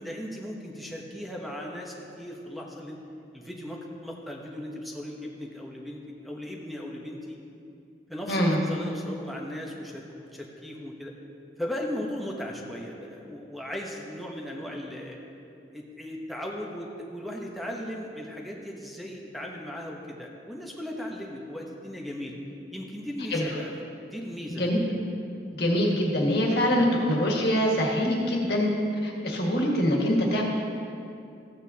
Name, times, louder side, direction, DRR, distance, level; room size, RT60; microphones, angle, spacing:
voice 1, 0.0-3.0 3.3-7.4 8.1-11.1 11.6-15.2 15.7-22.4 22.7-23.7 24.0-25.0, left 1 dB, ahead, -1 dB, 0.9 m, -37 dB
voice 2, 8.3-8.6 23.3-23.5 24.6-24.8 25.5-28.7 29.0-30.4, equal, 60° left, -2 dB, 1.7 m, -24 dB
14.5 x 8.7 x 2.8 m, 2.6 s
head